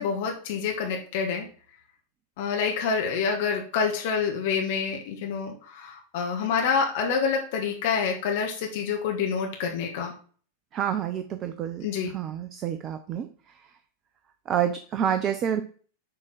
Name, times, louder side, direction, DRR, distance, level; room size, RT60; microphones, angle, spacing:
voice 1, 0.0-1.5 2.4-10.1 11.8-12.1, left 6 dB, 50° left, 1 dB, 1.5 m, -27 dB
voice 2, 10.7-11.9 12.1-13.3 14.5-15.6, right 9 dB, 30° right, 9 dB, 0.6 m, -28 dB
7.7 x 3.8 x 6.4 m, 0.43 s
figure-of-eight pair, 90°, 0 cm